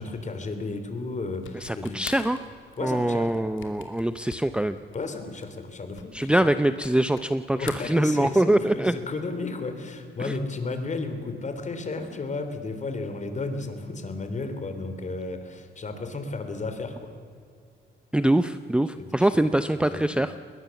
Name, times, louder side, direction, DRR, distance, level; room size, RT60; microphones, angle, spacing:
voice 1, 0.0-2.0 2.8-3.3 4.9-6.4 7.5-17.1 19.0-19.3 19.7-20.3, left 3 dB, 35° left, 8 dB, 3.2 m, -33 dB
sound 1, 1.3-7.3 7.6-8.6, left 9 dB, 75° left, 2.7 m, -45 dB
voice 2, 1.6-2.4 2.8-4.8 6.1-9.0 10.2-10.3 18.1-20.3, right 1 dB, 5° right, 10 dB, 0.7 m, -23 dB
21.0 x 20.5 x 7.1 m, 2.2 s
cardioid pair, 90°, 20 cm